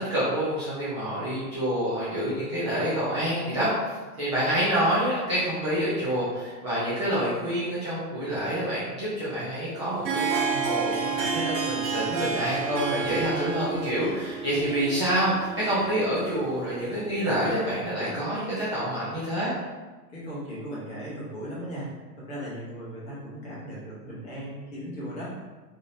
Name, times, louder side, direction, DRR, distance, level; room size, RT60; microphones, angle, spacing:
voice 1, 0.0-3.7 4.2-19.5, equal, 20° right, -12 dB, 0.5 m, -27 dB
Harp, 9.8-17.5, right 5 dB, 90° right, 1.0 m, -31 dB
voice 2, 20.1-25.4, equal, 15° left, -8 dB, 0.7 m, -37 dB
4.8 x 2.8 x 2.6 m, 1.3 s
hypercardioid pair, 165°, 49 cm